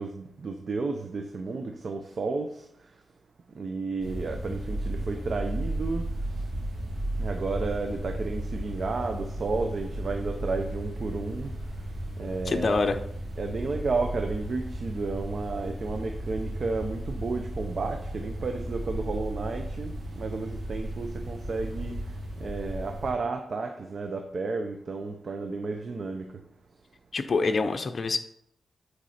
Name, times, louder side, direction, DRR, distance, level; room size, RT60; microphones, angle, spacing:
voice 1, 0.0-2.9 3.5-6.5 7.2-11.6 12.2-12.7 13.4-26.4, right 3 dB, 55° right, 5 dB, 0.7 m, -32 dB
sound 1, 4.0-23.1, right 1 dB, 70° right, 3.0 m, -34 dB
voice 2, 12.4-13.0 27.1-28.2, left 3 dB, 45° left, 7 dB, 0.7 m, -25 dB
9.3 x 4.7 x 4.3 m, 0.70 s
wide cardioid pair, 95°, 0 cm